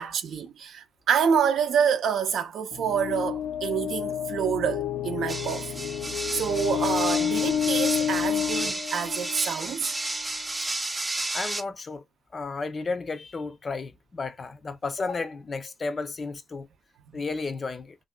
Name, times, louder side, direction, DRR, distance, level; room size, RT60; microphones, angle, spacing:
voice 1, 0.0-10.0 17.1-17.2, right 7 dB, 70° right, 0.6 m, -27 dB
sound 1, 2.7-9.6, left 9 dB, 85° left, 0.5 m, -29 dB
sound 2, 5.3-11.6, right 2 dB, 15° right, 0.6 m, -32 dB
voice 2, 11.3-12.0 12.3-16.7 17.1-18.0, left 4 dB, 35° left, 0.5 m, -33 dB
3.4 x 2.6 x 2.3 m
cardioid pair, 90°, 0 cm